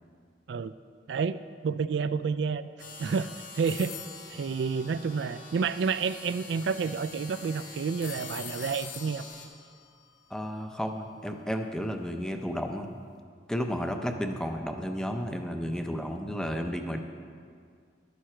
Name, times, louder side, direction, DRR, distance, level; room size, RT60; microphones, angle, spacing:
voice 1, 1.1-2.6 3.0-3.9 4.3-9.3, right 5 dB, 80° right, 13 dB, 0.3 m, -30 dB
sound 1, 2.8-9.5, left 3 dB, 50° left, 1.4 m, -46 dB
sound 2, 3.7-5.7 8.0-11.1, left 9 dB, 75° left, 0.8 m, -45 dB
voice 2, 10.3-12.9 13.5-17.0, equal, 5° left, 5 dB, 0.6 m, -32 dB
12.0 x 9.6 x 4.4 m, 2.1 s
head